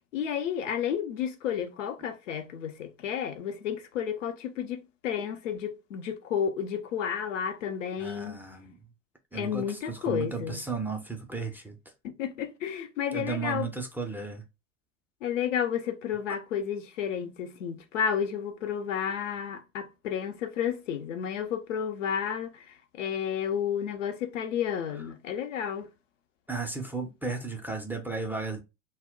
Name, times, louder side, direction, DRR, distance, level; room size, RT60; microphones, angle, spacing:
voice 1, 0.1-8.4 9.3-10.6 12.0-13.7 15.2-25.9, left 8 dB, 80° left, 0.6 m, -31 dB
voice 2, 8.0-8.8 9.3-11.8 13.1-14.4 17.2-17.3 26.5-28.6, right 4 dB, 5° right, 0.4 m, -34 dB
2.1 x 2.1 x 3.6 m
hypercardioid pair, 85°, 37 cm